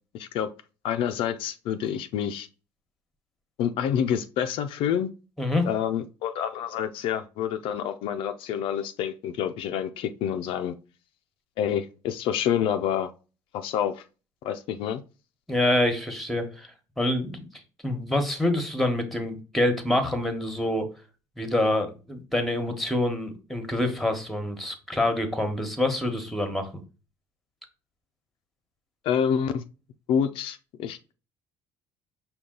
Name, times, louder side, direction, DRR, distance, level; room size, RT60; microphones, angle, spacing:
voice 1, 0.1-0.5 0.8-2.5 3.6-5.1 5.7-10.8 11.6-13.1 13.5-14.0 14.4-15.0 29.0-29.6 30.1-31.1, left 9 dB, 70° left, 0.4 m, -28 dB
voice 2, 5.4-5.7 15.5-16.7 17.0-17.4 17.8-20.9 21.4-26.7, left 1 dB, ahead, 1.1 m, -26 dB
5.3 x 2.3 x 3.7 m
supercardioid pair, 90°, 9 cm